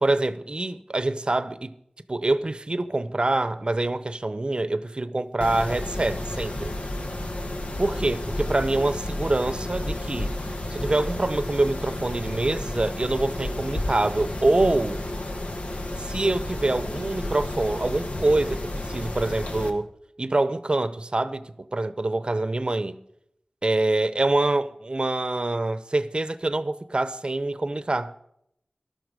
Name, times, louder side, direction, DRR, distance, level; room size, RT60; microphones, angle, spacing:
voice 1, 0.0-1.7 2.1-6.7 7.8-10.3 10.7-15.0 16.0-19.9 20.2-23.0 23.6-28.1, right 2 dB, 50° right, 0.8 m, -25 dB
Mechanisms, 5.4-19.7, left 1 dB, 70° left, 1.6 m, -31 dB
14.5 x 12.0 x 5.1 m
wide cardioid pair, 55°, 2 cm